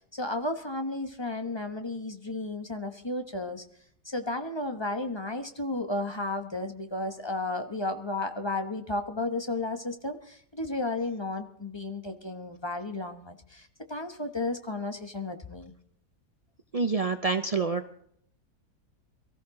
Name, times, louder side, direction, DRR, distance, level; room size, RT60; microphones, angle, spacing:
voice 1, 0.1-3.6 4.0-15.7, left 2 dB, 20° left, 6 dB, 1.0 m, -33 dB
voice 2, 16.7-17.8, right 4 dB, 70° right, 7 dB, 0.3 m, -27 dB
23.0 x 14.0 x 3.8 m, 0.65 s
omnidirectional pair, 1.7 m